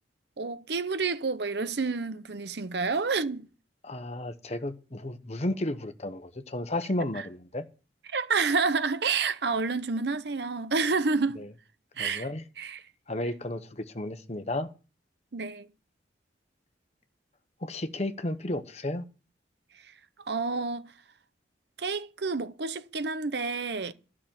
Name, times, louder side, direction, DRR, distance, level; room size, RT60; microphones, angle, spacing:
voice 1, 0.4-3.5 8.1-11.4 12.0-12.3 12.6-12.8 15.3-15.7 20.3-20.9 21.8-23.9, right 4 dB, 60° right, 0.8 m, -29 dB
voice 2, 3.8-7.7 11.4-11.5 12.0-12.4 13.1-14.7 17.6-19.0, left 1 dB, 35° left, 1.0 m, -33 dB
13.0 x 6.1 x 8.8 m
head